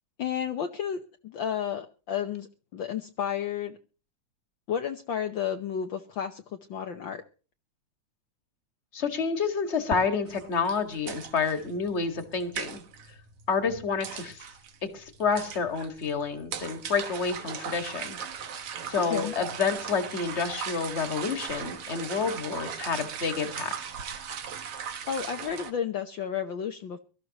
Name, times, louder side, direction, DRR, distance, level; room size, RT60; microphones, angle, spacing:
voice 1, 0.2-3.8 4.7-7.2 19.1-19.3 25.1-27.0, left 8 dB, 70° left, 6 dB, 1.1 m, -32 dB
voice 2, 8.9-12.8 13.5-14.4 14.8-18.2 18.8-23.7, left 5 dB, 30° left, 7 dB, 1.6 m, -29 dB
sound 1, 10.3-25.7, right 7 dB, 55° right, 2.2 m, -39 dB
23.5 x 13.0 x 3.0 m, 0.37 s
omnidirectional pair, 3.4 m